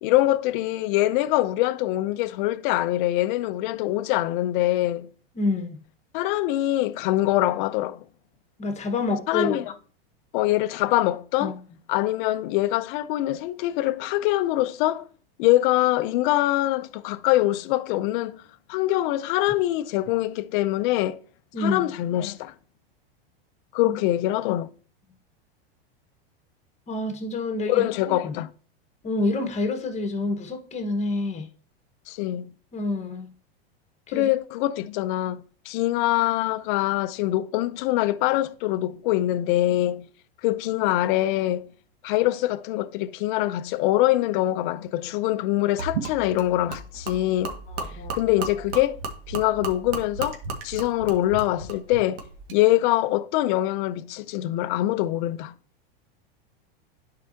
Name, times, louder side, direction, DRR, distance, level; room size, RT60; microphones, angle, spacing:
voice 1, 0.0-5.1 6.1-8.0 9.3-9.6 10.3-11.6 11.9-15.0 15.4-18.4 18.7-21.2 21.6-22.5 23.7-24.7 27.7-28.5 32.1-32.5 34.1-40.0 40.4-41.7 42.0-47.6 48.1-49.0 49.3-50.4 50.6-52.2 52.5-55.5, left 15 dB, 55° left, 0.7 m, -24 dB
voice 2, 5.4-5.8 8.6-9.6 11.4-11.5 21.5-21.9 23.8-24.0 26.9-28.3 29.0-31.5 32.7-33.3 34.1-34.3 47.7-48.1, left 2 dB, 20° left, 1.4 m, -28 dB
Gurgling / Liquid, 45.8-52.6, right 4 dB, 70° right, 1.9 m, -35 dB
11.0 x 4.9 x 2.8 m
supercardioid pair, 130°, 30 cm